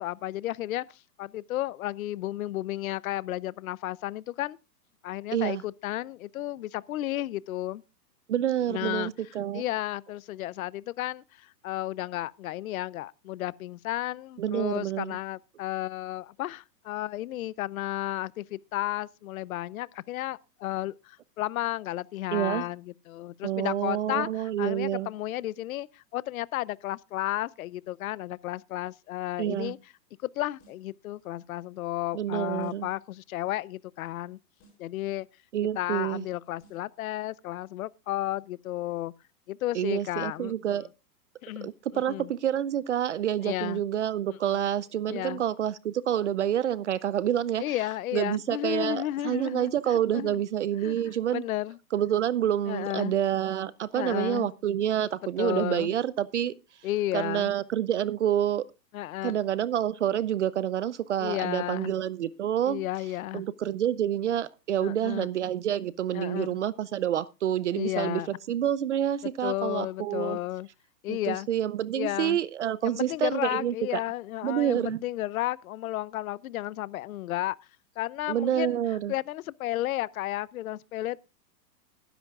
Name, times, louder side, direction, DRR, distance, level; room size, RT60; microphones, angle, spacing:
voice 1, 0.0-4.6 5.0-7.8 8.7-9.1 9.5-29.8 30.2-34.4 34.8-35.3 35.8-39.1 39.5-40.8 41.4-41.7 42.1-42.3 43.4-43.8 44.5-44.6 45.1-45.4 47.6-50.4 50.8-51.8 52.7-53.1 53.9-54.5 55.4-55.9 56.8-57.5 58.9-59.4 61.2-61.9 62.6-63.4 64.8-65.3 66.1-66.5 67.7-68.3 69.4-70.7 71.0-71.5 71.9-72.4 72.8-77.6 78.0-78.8 79.1-81.2, left 15 dB, 60° left, 0.6 m, -33 dB
voice 2, 5.3-5.6 8.3-9.6 14.4-15.2 22.3-22.6 23.4-25.1 29.4-29.7 32.1-32.9 35.5-36.3 39.7-40.9 41.6-47.6 48.1-51.4 51.9-56.5 57.1-58.6 59.2-62.8 63.3-68.2 68.5-70.4 71.1-74.0 74.4-75.0 78.3-79.1, right 10 dB, 50° right, 0.5 m, -28 dB
sound 1, 30.6-31.0 32.6-33.0 34.6-35.0 36.6-37.0, right 2 dB, 30° left, 5.7 m, -61 dB
19.5 x 10.0 x 2.4 m
hypercardioid pair, 160°, 50 cm